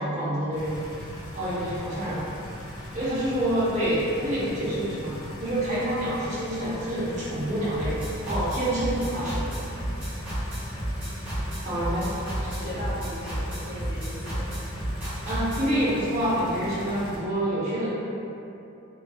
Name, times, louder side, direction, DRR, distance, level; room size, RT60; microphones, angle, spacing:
voice 1, 0.0-2.3 2.9-9.5 11.6-12.1 12.4-12.8 15.2-17.9, right 1 dB, 35° right, -9 dB, 0.7 m, -27 dB
sound 1, 0.5-17.2, equal, 90° left, 0.6 m, -40 dB
sound 2, 7.8-15.7, right 1 dB, 10° right, 0.9 m, -31 dB
voice 2, 11.7-14.4, equal, 65° left, -13 dB, 1.2 m, -38 dB
2.6 x 2.3 x 2.3 m, 2.8 s
head